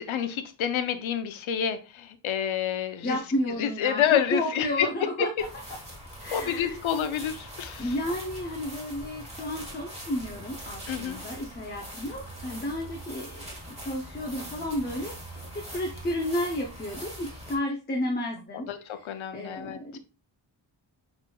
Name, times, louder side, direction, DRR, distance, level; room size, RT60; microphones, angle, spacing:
voice 1, 0.0-3.2 3.6-4.9 6.3-7.9 10.9-11.2 18.5-20.0, left 9 dB, 90° left, 9 dB, 0.6 m, -28 dB
voice 2, 3.0-5.5 6.2-6.8 7.8-18.7 18.9-19.1 19.3-20.0, left 1 dB, 20° left, 1 dB, 0.5 m, -32 dB
sound 1, 5.4-17.5, right 1 dB, 15° right, 1.2 m, -42 dB
5.9 x 3.1 x 2.2 m, 0.32 s
wide cardioid pair, 140°, 47 cm